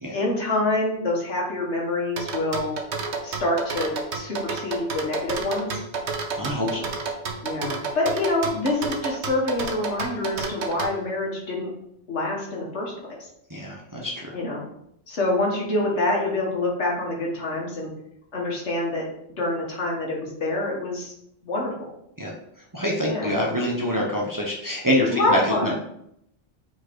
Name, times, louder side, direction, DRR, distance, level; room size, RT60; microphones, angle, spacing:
voice 1, 0.1-2.7 3.2-5.8 7.4-11.7 12.1-13.3 14.3-14.6 15.1-17.9 18.3-19.0 19.4-21.1 21.4-21.9 23.0-23.3 25.1-25.7, left 2 dB, 75° left, -2 dB, 1.8 m, -26 dB
sound 1, 2.2-10.9, right 4 dB, 70° right, 1.1 m, -30 dB
voice 2, 6.4-7.0 13.5-14.3 22.2-22.3 22.7-25.7, equal, 20° right, -2 dB, 0.9 m, -25 dB
5.2 x 4.5 x 4.6 m, 0.76 s
omnidirectional pair, 1.2 m